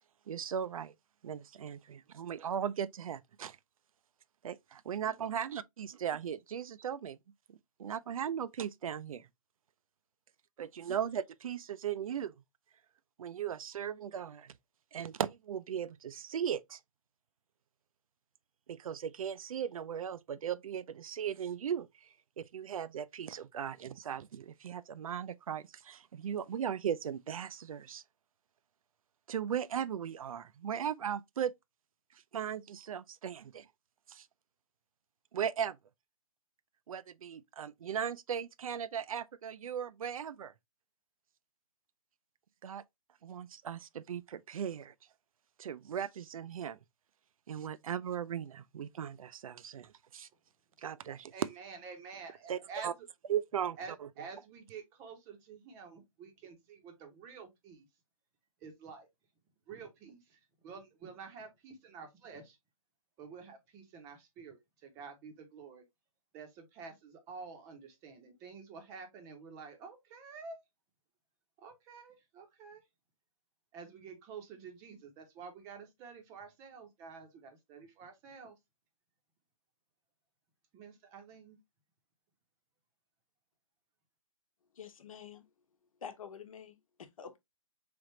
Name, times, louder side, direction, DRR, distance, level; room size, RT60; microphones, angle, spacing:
voice 1, 0.3-0.9 1.2-3.6 4.4-7.2 7.5-9.3 10.6-12.3 13.2-14.6 14.9-16.8 18.7-28.0 29.3-31.5 32.1-33.7 34.1-34.3 35.3-35.8 36.9-40.5 42.6-42.8 43.2-44.9 45.6-46.8 47.5-50.3 50.8-51.3 52.5-52.9 53.3-54.1, right 8 dB, 70° right, 0.4 m, -38 dB
voice 2, 51.3-52.9 53.8-57.8 58.6-59.1 59.7-62.6 63.2-65.8 66.3-70.6 71.6-72.8 73.7-78.5 80.7-81.6, right 5 dB, 15° right, 0.7 m, -49 dB
voice 3, 84.7-85.4 86.0-87.4, left 7 dB, 70° left, 1.0 m, -48 dB
3.8 x 3.3 x 3.0 m
hypercardioid pair, 160°, 18 cm